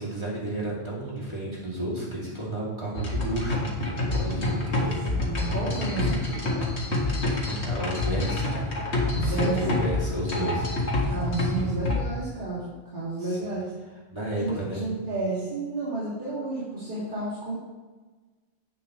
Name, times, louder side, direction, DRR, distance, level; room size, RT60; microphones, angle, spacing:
voice 1, 0.0-3.7 3.9-5.0 7.6-8.5 9.1-10.7 13.2-13.5 14.1-14.8, right 1 dB, 25° right, -6 dB, 2.7 m, -32 dB
sound 1, 2.9-12.0, left 2 dB, 85° left, 2.0 m, -27 dB
voice 2, 5.2-6.6 9.2-9.6 10.4-10.5 11.1-13.7 14.4-17.5, right 3 dB, 50° right, -10 dB, 2.4 m, -31 dB
9.7 x 8.7 x 3.1 m, 1.3 s
omnidirectional pair, 1.1 m